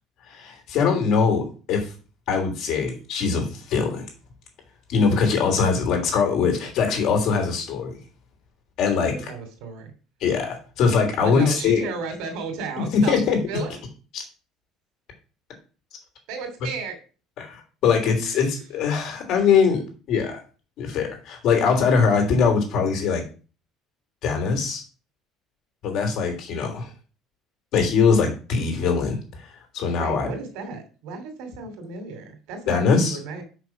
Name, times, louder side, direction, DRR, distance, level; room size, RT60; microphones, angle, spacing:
voice 1, 0.3-1.9 2.3-4.1 4.9-8.0 8.8-9.3 10.2-11.8 12.8-13.4 14.1-14.2 17.4-20.4 20.8-23.2 24.2-24.8 25.8-26.9 27.7-30.3 32.7-33.2, left 5 dB, 55° left, 3 dB, 3.3 m, -22 dB
voice 2, 9.0-9.9 11.2-13.2 13.5-13.7 16.3-17.0 18.2-18.4 30.0-33.4, right 4 dB, 75° right, 6 dB, 2.8 m, -34 dB
6.2 x 6.2 x 6.0 m, 0.37 s
cardioid pair, 160°, 0 cm